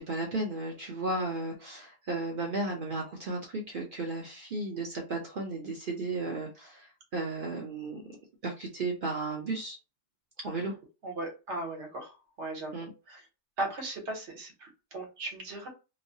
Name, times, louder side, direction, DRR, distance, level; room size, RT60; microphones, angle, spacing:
voice 1, 0.0-6.9 7.1-8.0 8.4-9.8 10.4-10.7 12.7-12.9, right 2 dB, 50° right, -1 dB, 0.8 m, -34 dB
voice 2, 11.0-12.7 13.1-13.3 13.6-15.7, right 2 dB, 75° right, 1 dB, 1.3 m, -37 dB
3.0 x 2.0 x 2.6 m, 0.30 s
omnidirectional pair, 1.2 m